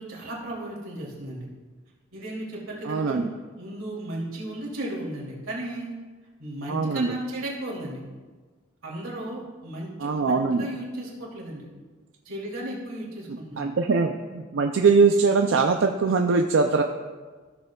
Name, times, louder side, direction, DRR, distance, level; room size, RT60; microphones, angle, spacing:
voice 1, 0.0-1.5 2.1-3.2 3.6-5.9 6.4-8.0 8.8-11.7 12.2-13.6, right 1 dB, 90° right, -4 dB, 2.7 m, -35 dB
voice 2, 2.8-3.3 6.7-7.1 10.0-10.7 13.6-16.8, right 4 dB, 65° right, 4 dB, 0.4 m, -22 dB
15.0 x 6.5 x 2.3 m, 1.4 s
head